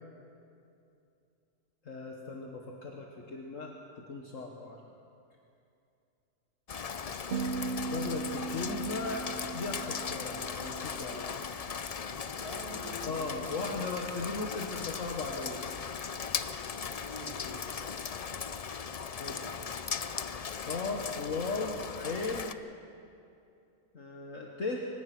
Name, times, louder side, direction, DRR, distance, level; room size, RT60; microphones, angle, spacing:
voice 1, 1.9-4.8 7.6-11.4 13.0-15.6 19.2-19.4 20.6-22.5 23.9-24.9, left 3 dB, 60° left, 0 dB, 1.8 m, -37 dB
Rain, 6.7-22.5, left 6 dB, 85° left, 0.3 m, -38 dB
sound 1, 7.3-11.6, right 4 dB, 60° right, 0.7 m, -39 dB
voice 2, 12.4-13.8 17.0-17.6, left 1 dB, 20° left, -3 dB, 3.9 m, -45 dB
27.5 x 16.5 x 6.1 m, 2.6 s
omnidirectional pair, 1.6 m